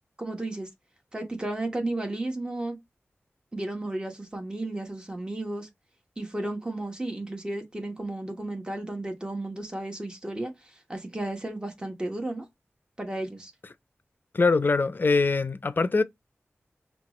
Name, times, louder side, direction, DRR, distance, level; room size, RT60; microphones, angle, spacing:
voice 1, 0.2-0.7 1.1-2.8 3.5-5.7 6.2-12.5 13.0-13.5, right 2 dB, 20° right, 1.2 m, -33 dB
voice 2, 14.3-16.0, left 3 dB, 50° left, 0.5 m, -23 dB
5.7 x 2.4 x 3.0 m
wide cardioid pair, 65°, 4 cm